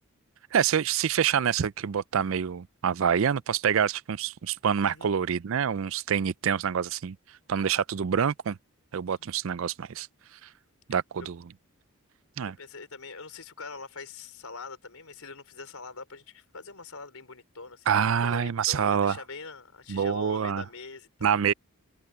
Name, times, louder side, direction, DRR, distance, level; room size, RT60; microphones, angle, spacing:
voice 1, 0.5-7.2 7.5-8.6 8.9-10.1 10.9-11.4 12.4-12.6 17.9-19.2 19.9-20.6 21.2-21.5, right 7 dB, 65° right, 0.4 m, -26 dB
voice 2, 4.8-5.2 9.2-9.6 12.4-21.5, left 4 dB, 80° left, 4.2 m, -44 dB
open air
head